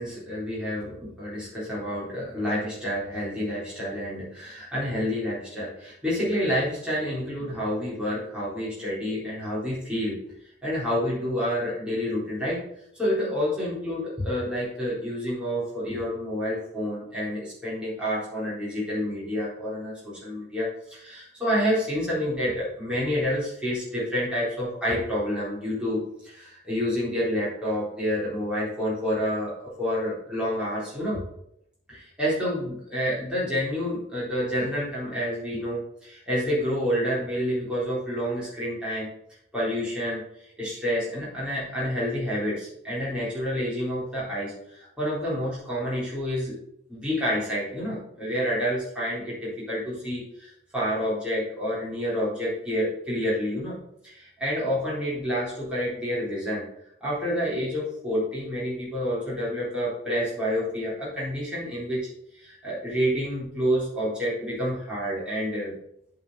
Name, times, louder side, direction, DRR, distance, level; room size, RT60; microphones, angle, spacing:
voice 1, 0.0-10.2 10.6-12.6 12.9-31.2 31.9-39.1 39.5-40.2 40.6-46.6 46.9-53.8 54.0-56.6 57.0-65.7, equal, 5° right, -9 dB, 3.9 m, -28 dB
8.2 x 5.1 x 6.6 m, 0.76 s
head